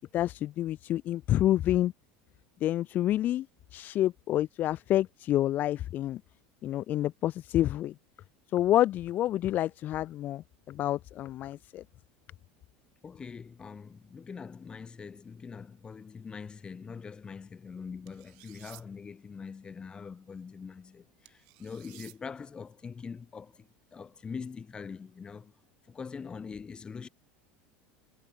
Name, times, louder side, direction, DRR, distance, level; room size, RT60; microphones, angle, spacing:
voice 1, 0.1-1.9 2.6-3.5 3.7-6.2 6.6-7.9 8.5-11.8, left 13 dB, 40° left, 0.9 m, -28 dB
voice 2, 13.0-25.5 25.9-27.1, left 5 dB, 20° left, 3.7 m, -43 dB
sound 1, 18.1-18.8 21.3-22.2, right 33 dB, 65° right, 7.1 m, -53 dB
supercardioid pair, 140°, 5 cm